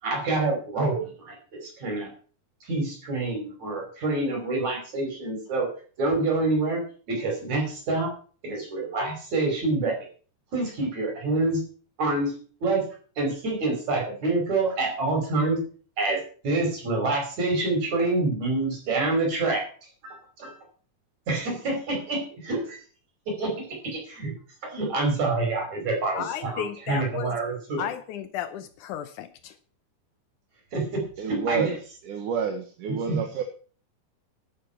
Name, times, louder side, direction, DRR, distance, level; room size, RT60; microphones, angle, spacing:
voice 1, 0.0-2.1 2.6-5.7 6.0-8.1 8.4-10.1 10.5-11.6 12.0-12.3 12.6-12.8 13.2-15.6 16.0-19.7 20.0-20.5 21.3-22.8 23.3-24.3 24.6-27.9 30.7-31.6 33.1-33.2, right 2 dB, 60° right, 1 dB, 6.5 m, -27 dB
voice 2, 26.2-27.3 27.8-29.5, left 10 dB, 80° left, 11 dB, 2.3 m, -33 dB
voice 3, 31.2-31.8 32.0-33.4, right 7 dB, 80° right, 4 dB, 3.0 m, -29 dB
12.0 x 11.0 x 5.8 m, 0.42 s
omnidirectional pair, 3.6 m